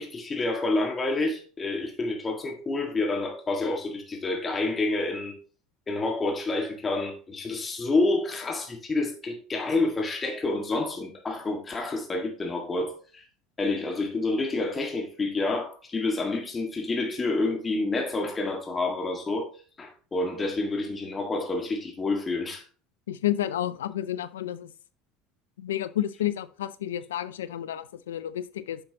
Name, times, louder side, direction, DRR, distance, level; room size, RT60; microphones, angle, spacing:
voice 1, 0.0-5.3 5.9-13.2 13.6-19.5 19.8-22.6, left 2 dB, 25° left, 1.8 m, -28 dB
voice 2, 23.1-24.7 25.6-28.8, left 12 dB, 85° left, 0.4 m, -30 dB
8.9 x 5.7 x 2.9 m
hypercardioid pair, 75°, 0 cm